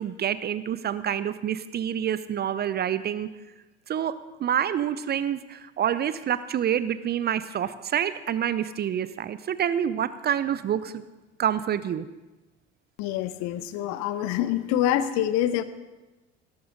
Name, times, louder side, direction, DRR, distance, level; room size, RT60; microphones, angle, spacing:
voice 1, 0.0-3.3 3.9-4.1 4.4-11.0 11.4-12.1, right 9 dB, 30° right, 15 dB, 0.6 m, -27 dB
voice 2, 13.0-15.6, left 11 dB, 55° left, 14 dB, 0.9 m, -26 dB
17.5 x 13.5 x 3.8 m, 1.1 s
figure-of-eight pair, 65°, 34 cm